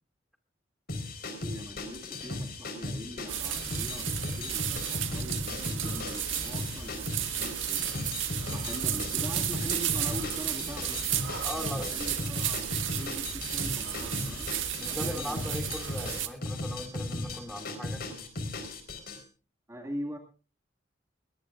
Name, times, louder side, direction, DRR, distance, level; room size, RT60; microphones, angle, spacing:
sound 1, 0.9-19.2, left 2 dB, 55° left, 4.4 m, -36 dB
voice 1, 1.4-8.0 8.4-11.0 11.6-12.7 12.9-14.5 14.9-15.7 19.7-20.2, equal, 15° right, 1 dB, 2.1 m, -42 dB
sound 2, 3.3-16.3, right 11 dB, 90° right, 1.6 m, -33 dB
voice 2, 11.4-11.9 14.8-18.3, equal, ahead, 4 dB, 2.5 m, -39 dB
21.5 x 19.0 x 2.5 m, 0.34 s
head